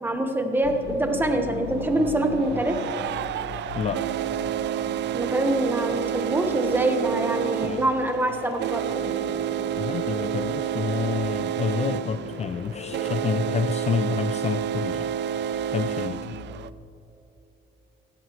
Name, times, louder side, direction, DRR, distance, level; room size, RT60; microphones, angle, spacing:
voice 1, 0.0-2.8 5.1-9.0, right 1 dB, 10° right, 4 dB, 1.2 m, -25 dB
sound 1, 0.6-16.7, left 5 dB, 80° left, 1.0 m, -43 dB
sound 2, 0.6-0.7 1.7-16.7, right 10 dB, 55° right, 0.4 m, -29 dB
voice 2, 3.7-4.1 7.6-7.8 9.7-16.4, left 6 dB, 30° left, 9 dB, 0.4 m, -29 dB
sound 3, 8.9-14.6, left 2 dB, 60° left, 2.2 m, -41 dB
15.5 x 15.5 x 3.1 m, 2.8 s
cardioid pair, 135°, 21 cm